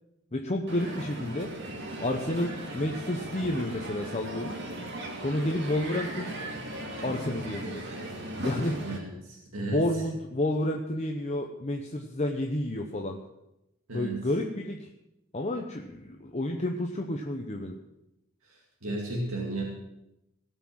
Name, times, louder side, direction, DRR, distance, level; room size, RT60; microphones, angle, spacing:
voice 1, 0.3-1.5 2.0-4.6 5.2-6.3 7.0-7.8 8.4-8.8 9.7-13.2 13.9-14.9 15.3-17.8, left 1 dB, 30° left, 2 dB, 0.9 m, -30 dB
Crowd, 0.7-9.0, right 1 dB, 55° right, 2.4 m, -37 dB
voice 2, 8.8-10.0 13.9-14.2 18.4-19.6, right 1 dB, 90° right, -1 dB, 2.3 m, -34 dB
18.0 x 6.2 x 7.5 m, 0.89 s
head